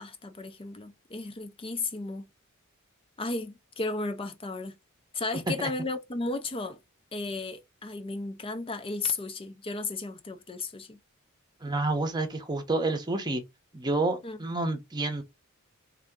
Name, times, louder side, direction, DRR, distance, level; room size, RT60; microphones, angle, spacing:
voice 1, 0.0-2.3 3.2-4.8 5.1-6.8 7.1-11.0 14.2-14.4, left 3 dB, 25° left, 0.5 m, -34 dB
voice 2, 11.6-13.4 13.7-15.2, right 2 dB, 20° right, 0.8 m, -29 dB
3.6 x 2.8 x 3.6 m
head